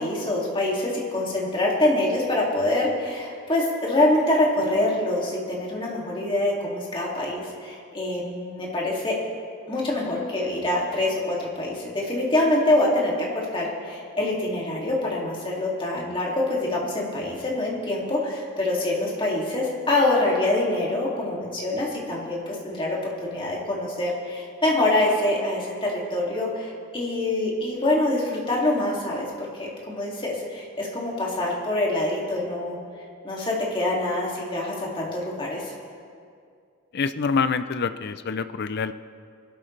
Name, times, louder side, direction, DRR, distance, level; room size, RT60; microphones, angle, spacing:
voice 1, 0.0-9.2 9.7-32.8 33.2-35.7, left 1 dB, 25° left, -3 dB, 2.5 m, -25 dB
voice 2, 36.9-38.9, left 5 dB, 50° left, 12 dB, 0.5 m, -26 dB
22.5 x 12.5 x 3.3 m, 2.3 s
head